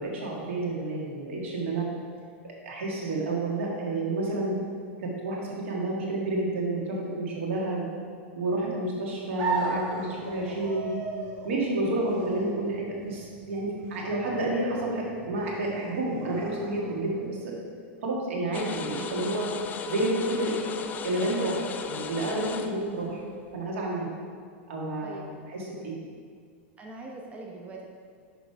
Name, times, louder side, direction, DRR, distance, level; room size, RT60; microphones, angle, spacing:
voice 1, 0.0-1.9 2.4-4.5 5.0-7.9 8.3-10.9 11.4-17.5 18.0-19.5 19.9-20.7 21.0-23.2 23.5-24.1 24.7-26.0, right 2 dB, 80° right, -3 dB, 1.8 m, -30 dB
sound 1, 9.4-17.3, right 2 dB, 50° right, 1.1 m, -37 dB
sound 2, 18.5-23.7, left 7 dB, 25° left, 0.4 m, -37 dB
voice 2, 26.8-27.9, right 3 dB, 20° right, 0 dB, 0.7 m, -42 dB
6.3 x 5.2 x 4.6 m, 2.1 s
supercardioid pair, 130°, 7 cm